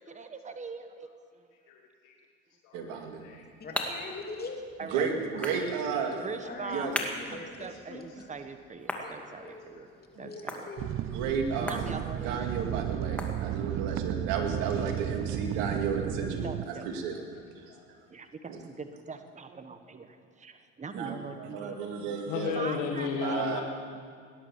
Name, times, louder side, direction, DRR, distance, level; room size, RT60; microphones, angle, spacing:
voice 1, 0.1-1.5 4.8-5.1 5.3-5.6 6.2-6.9 7.3-9.9 10.2-10.7 11.6-12.5 14.8-14.9 15.7-16.1 16.4-16.9 18.1-21.8 22.5-23.6, right 4 dB, 20° right, 8 dB, 1.3 m, -42 dB
voice 2, 1.7-2.2 2.6-2.9 3.2-3.4 8.2-8.3 9.3-9.4 10.1-10.3 11.1-11.2 17.1-17.9 22.3-23.6, left 6 dB, 75° left, 1 dB, 1.7 m, -35 dB
voice 3, 2.7-3.2 4.8-6.2 6.7-7.0 7.3-7.4 10.1-10.3 11.0-17.2 17.6-17.8 18.5-18.6 20.9-22.6 23.2-23.6, right 5 dB, 80° right, 3 dB, 2.5 m, -33 dB
sound 1, 3.0-13.9, left 1 dB, 5° left, 2.4 m, -41 dB
voice 4, 3.6-4.6 6.4-8.0 9.0-9.1 9.4-10.9, left 3 dB, 30° left, 1 dB, 3.1 m, -42 dB
sound 2, 10.8-16.7, right 12 dB, 45° right, 0.5 m, -34 dB
18.0 x 11.0 x 7.3 m, 2.1 s
supercardioid pair, 80°, 32 cm